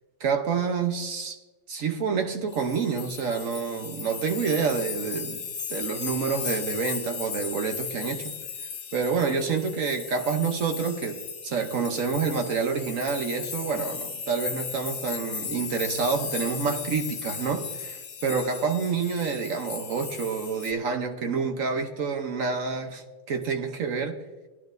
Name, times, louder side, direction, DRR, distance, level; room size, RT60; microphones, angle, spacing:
voice 1, 0.2-1.4 1.7-5.4 5.7-8.3 8.9-11.2 11.4-24.2, right 5 dB, 55° right, 5 dB, 1.0 m, -28 dB
sound 1, 2.5-20.7, left 6 dB, 70° left, 1.9 m, -36 dB
18.5 x 11.0 x 2.6 m, 1.2 s
omnidirectional pair, 2.3 m